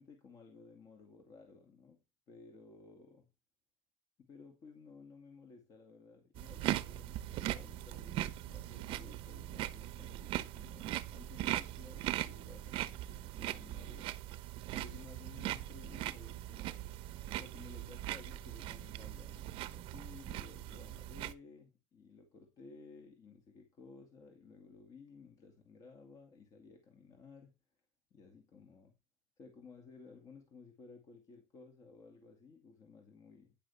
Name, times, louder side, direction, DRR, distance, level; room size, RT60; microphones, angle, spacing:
voice 1, 0.0-3.3 4.2-14.2 14.7-16.9 17.4-27.6 28.1-28.9 29.4-33.6, left 4 dB, 35° left, 2.3 m, -56 dB
sound 1, 6.3-21.3, right 14 dB, 55° right, 0.9 m, -40 dB
11.5 x 9.9 x 3.5 m
cardioid pair, 180°, 11 cm